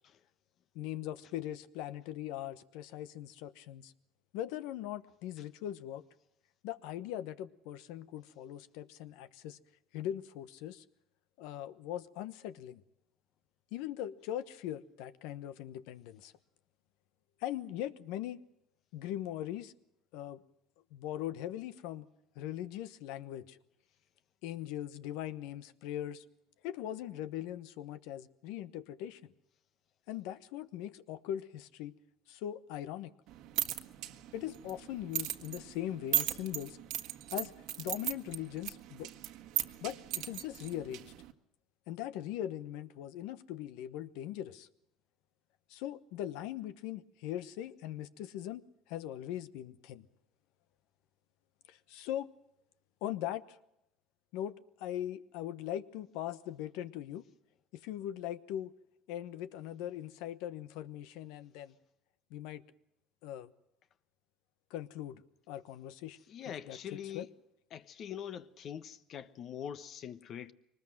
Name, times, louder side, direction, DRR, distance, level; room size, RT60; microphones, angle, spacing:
voice 1, 0.7-3.9 4.3-6.0 6.6-9.6 9.9-10.8 11.4-12.8 13.7-16.3 17.4-18.4 18.9-19.7 20.1-20.4 20.9-22.1 22.4-23.6 24.4-26.2 26.6-29.2 30.1-31.9 32.3-33.1 34.3-36.8 37.3-39.1 39.8-41.1 41.9-44.7 45.7-48.6 48.9-50.1 51.7-52.3 53.0-53.6 54.3-57.2 57.7-58.7 59.1-61.7 62.3-62.6 63.2-63.5 64.7-65.2 65.5-66.2 66.4-67.3, left 12 dB, 80° left, 1.1 m, -40 dB
sound 1, 33.3-41.3, right 15 dB, 75° right, 1.4 m, -38 dB
voice 2, 66.3-67.3 67.7-70.5, left 9 dB, 50° left, 1.1 m, -43 dB
23.5 x 20.0 x 7.8 m
supercardioid pair, 105°, 0 cm